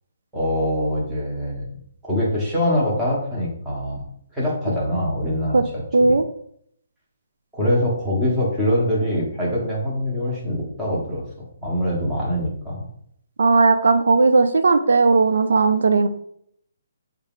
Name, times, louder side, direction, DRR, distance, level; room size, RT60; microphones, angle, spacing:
voice 1, 0.3-1.7 2.0-4.0 4.3-6.2 7.5-11.2 11.6-12.8, left 1 dB, 5° right, -7 dB, 0.9 m, -23 dB
voice 2, 5.9-6.2 13.4-16.1, right 3 dB, 80° right, 9 dB, 0.4 m, -16 dB
5.5 x 2.4 x 3.6 m, 0.68 s
hypercardioid pair, 175°, 0 cm